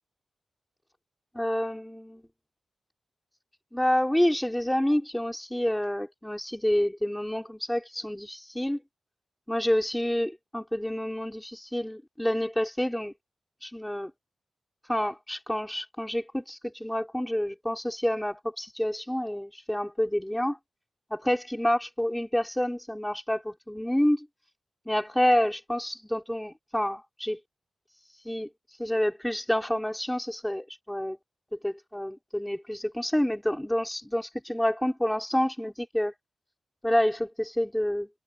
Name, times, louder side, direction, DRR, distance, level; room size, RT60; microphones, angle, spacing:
voice 1, 1.3-2.2 3.7-8.8 9.5-13.1 13.6-14.1 14.9-20.6 21.1-24.3 24.9-27.4 28.2-28.5 28.8-31.2 31.6-36.1 36.8-38.1, equal, 5° left, 3.9 m, -28 dB
wide cardioid pair, 150°, 0 cm